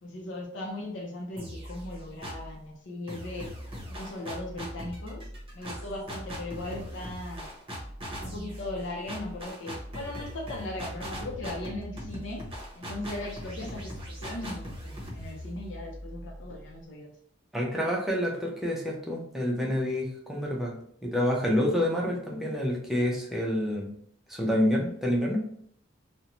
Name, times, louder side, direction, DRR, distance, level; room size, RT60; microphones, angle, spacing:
voice 1, 0.0-3.5 3.9-5.3 5.5-7.4 8.2-12.5 12.8-17.1, left 2 dB, 75° left, 0 dB, 0.5 m, -38 dB
sound 1, 1.4-2.6 3.1-16.8, equal, 30° right, 0.8 m, -40 dB
voice 2, 17.5-20.7 21.0-23.9 24.3-25.4, left 1 dB, ahead, -3 dB, 0.6 m, -28 dB
2.5 x 2.1 x 2.9 m, 0.64 s
head